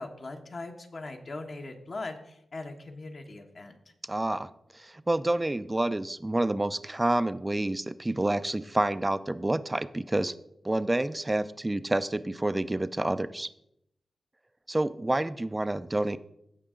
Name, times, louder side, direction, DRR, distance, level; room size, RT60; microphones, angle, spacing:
voice 1, 0.0-3.7, left 2 dB, 50° left, 4 dB, 1.2 m, -40 dB
voice 2, 4.1-4.5 4.7-10.3 10.6-13.5 14.7-16.2, right 1 dB, 20° right, 14 dB, 0.4 m, -28 dB
15.5 x 5.4 x 3.8 m, 0.77 s
cardioid pair, 80°, 0 cm